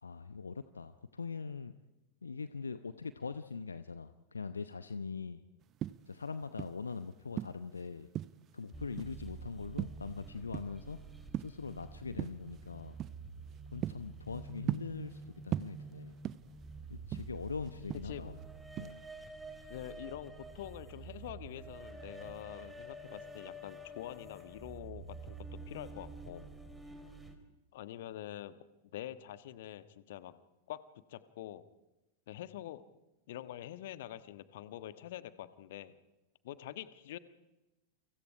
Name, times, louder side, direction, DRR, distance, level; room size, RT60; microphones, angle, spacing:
voice 1, 0.0-1.7 2.2-5.4 6.1-8.1 8.5-11.0 11.4-13.0 13.7-16.1 16.9-18.4 18.8-19.0, left 5 dB, 75° left, 12 dB, 0.9 m, -42 dB
sound 1, 5.6-6.9 7.3-8.6 9.0-9.3 9.8-10.9 11.2-11.7 12.2-12.5 13.0-13.2 13.6-15.2 15.5-16.6 16.9-18.4 18.8-19.1, right 12 dB, 30° right, 0.7 m, -38 dB
sound 2, 8.7-27.3, right 3 dB, 5° right, 4.1 m, -49 dB
voice 2, 19.7-26.5 27.7-28.6 28.9-30.3 30.7-31.6 32.3-32.8 33.3-35.9 36.4-37.2, left 12 dB, 55° left, 13 dB, 1.4 m, -46 dB
30.0 x 24.5 x 4.9 m, 1.0 s
figure-of-eight pair, 90°, 0 cm